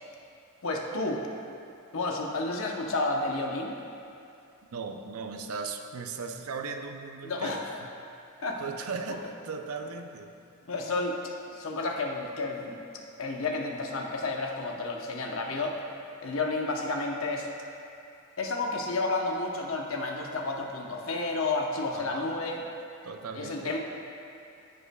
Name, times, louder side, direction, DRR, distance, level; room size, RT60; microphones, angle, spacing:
voice 1, 0.6-1.3 1.9-3.8 7.2-7.8 8.4-8.6 10.7-12.8 13.2-15.8 16.2-17.5 18.4-22.6 23.3-23.8, left 3 dB, 65° left, 1 dB, 0.8 m, -31 dB
voice 2, 4.7-7.7 8.6-10.3 21.9-22.3 23.0-23.8, right 4 dB, 85° right, 5 dB, 0.5 m, -37 dB
15.5 x 5.5 x 2.3 m, 2.7 s
head